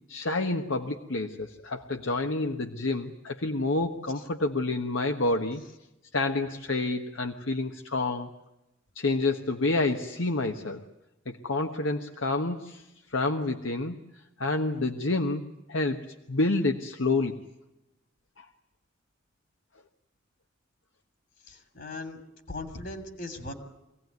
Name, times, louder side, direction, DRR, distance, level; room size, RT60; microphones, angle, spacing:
voice 1, 0.1-5.6 6.1-8.3 8.9-10.8 11.3-14.0 14.4-17.4 18.4-18.5, left 2 dB, 80° left, 4 dB, 1.3 m, -28 dB
voice 2, 21.5-22.2 22.5-23.5, left 2 dB, 55° left, 6 dB, 3.0 m, -39 dB
25.5 x 17.5 x 9.5 m, 0.96 s
head